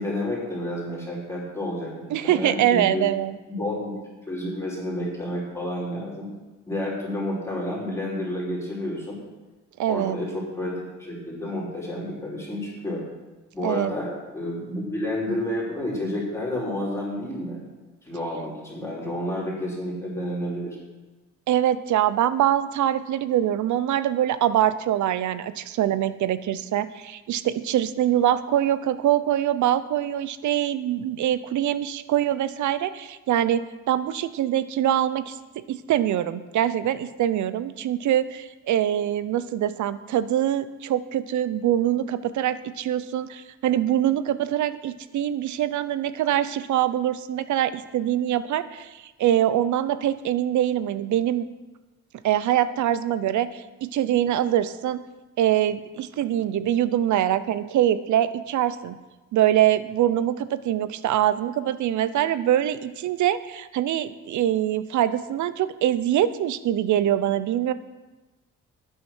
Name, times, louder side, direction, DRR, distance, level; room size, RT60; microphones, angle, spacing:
voice 1, 0.0-3.0 3.5-6.3 6.7-9.2 9.9-13.0 13.5-17.6 18.0-20.8, left 1 dB, 10° left, -6 dB, 5.1 m, -30 dB
voice 2, 2.1-3.4 9.8-10.2 13.6-13.9 21.5-35.4 35.7-48.9 49.2-51.5 52.2-55.0 55.4-59.0 59.3-67.7, right 11 dB, 75° right, 15 dB, 0.8 m, -24 dB
11.5 x 10.5 x 6.3 m, 1.2 s
cardioid pair, 90°, 30 cm